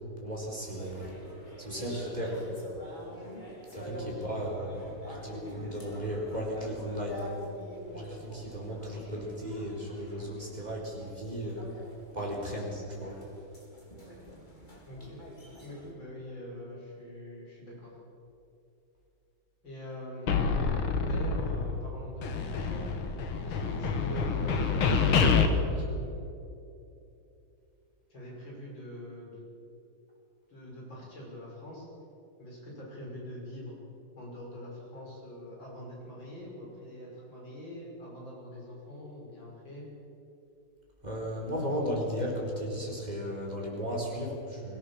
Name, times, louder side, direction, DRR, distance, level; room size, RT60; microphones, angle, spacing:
voice 1, 0.2-1.2 1.6-2.5 3.7-7.3 7.9-11.7 12.1-13.2 41.0-44.8, equal, 20° right, -2 dB, 4.5 m, -35 dB
sound 1, 0.8-15.9, equal, 20° left, 3.9 m, -45 dB
voice 2, 3.8-4.3 14.9-15.2 15.6-17.9 19.6-20.8 21.1-22.9 23.4-26.3 28.1-29.4 30.5-31.9 32.4-33.8 34.2-39.8, equal, 65° left, -4 dB, 7.0 m, -43 dB
sound 2, 20.3-21.9 22.2-25.5, left 5 dB, 85° left, 2.2 m, -27 dB
23.0 x 16.5 x 7.3 m, 2.8 s
omnidirectional pair, 2.2 m